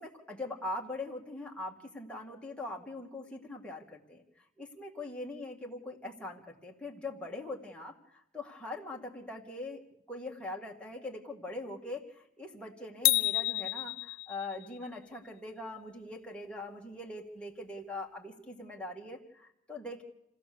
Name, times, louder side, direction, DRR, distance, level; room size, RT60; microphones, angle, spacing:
voice 1, 0.0-9.8 10.1-20.0, left 2 dB, 5° left, -2 dB, 2.1 m, -42 dB
sound 1, 13.1-14.6, left 19 dB, 90° left, 0.7 m, -29 dB
27.0 x 16.5 x 6.9 m, 0.84 s
head